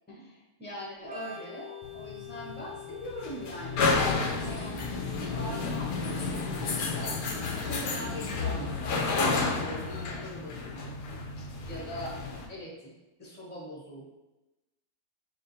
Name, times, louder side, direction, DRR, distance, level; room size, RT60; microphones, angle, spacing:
voice 1, 0.1-4.9 5.2-6.4 6.8-10.9 11.7-12.2 12.5-12.9 13.2-14.1, equal, 10° left, -5 dB, 0.5 m, -42 dB
Organ, 1.0-8.5, left 7 dB, 65° right, 0.6 m, -48 dB
sound 1, 1.8-12.5, left 4 dB, 85° left, 1.2 m, -31 dB
6.4 x 2.2 x 2.7 m, 1.0 s
omnidirectional pair, 1.7 m